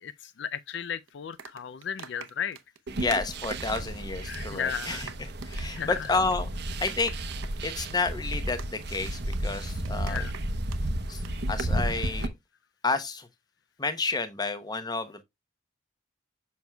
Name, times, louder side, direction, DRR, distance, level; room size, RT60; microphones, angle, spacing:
voice 1, 0.0-2.6 4.3-5.0 5.7-6.0 10.1-10.3, left 8 dB, 60° left, 0.4 m, -34 dB
sound 1, 1.1-4.0 4.3-4.5 4.8-10.8 11.1-11.3, right 6 dB, 85° right, 0.9 m, -45 dB
voice 2, 2.9-6.5 6.8-7.1 7.6-10.2 11.1-11.2 11.5-12.3 12.8-13.3 13.8-15.2, left 3 dB, 20° left, 0.8 m, -30 dB
sound 2, 2.9-12.3, right 1 dB, 55° right, 0.8 m, -33 dB
7.1 x 6.0 x 2.2 m
head